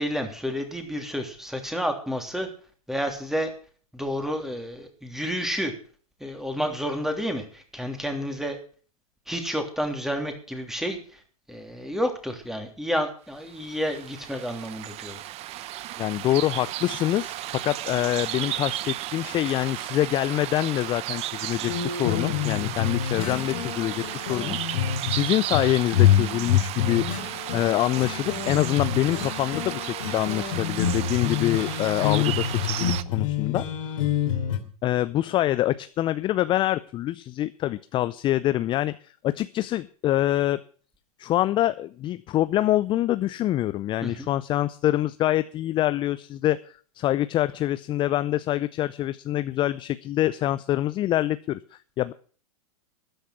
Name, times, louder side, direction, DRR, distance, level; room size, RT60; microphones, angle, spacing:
voice 1, 0.0-2.5 2.9-3.5 3.9-5.7 6.2-8.6 9.3-11.0 11.5-15.2 44.0-44.3, equal, ahead, 5 dB, 3.1 m, -30 dB
sound 1, 13.5-33.0, right 14 dB, 35° right, 0.8 m, -34 dB
voice 2, 16.0-27.0 27.5-34.1 34.8-40.6 41.2-52.1, left 14 dB, 25° left, 15 dB, 0.5 m, -25 dB
sound 2, 21.7-34.6, left 9 dB, 60° left, 3.0 m, -27 dB
13.5 x 10.0 x 5.8 m, 0.43 s
hypercardioid pair, 105°, 19 cm